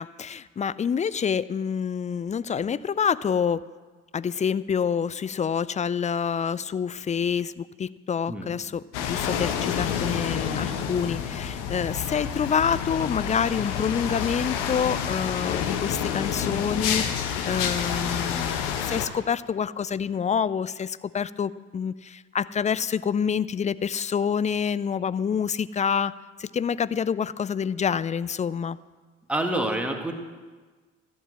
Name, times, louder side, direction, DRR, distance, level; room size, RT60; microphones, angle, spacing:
voice 1, 0.0-3.6 4.1-26.1 26.4-28.8, left 7 dB, 20° left, 18 dB, 0.4 m, -27 dB
sound 1, 8.9-19.1, left 8 dB, 70° left, 1.1 m, -29 dB
voice 2, 29.3-30.1, right 1 dB, 5° right, 3 dB, 2.0 m, -27 dB
14.5 x 7.5 x 7.9 m, 1.4 s
figure-of-eight pair, 45°, 35 cm